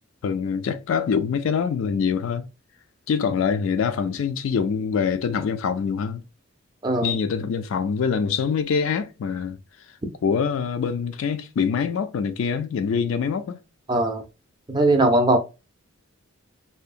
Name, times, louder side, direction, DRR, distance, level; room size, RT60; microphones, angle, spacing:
voice 1, 0.2-2.5 3.1-6.2 7.0-9.6 10.2-13.6, left 6 dB, 70° left, 0.3 m, -24 dB
voice 2, 13.9-14.2 14.7-15.4, right 2 dB, 20° right, 0.5 m, -19 dB
2.7 x 2.0 x 2.4 m
head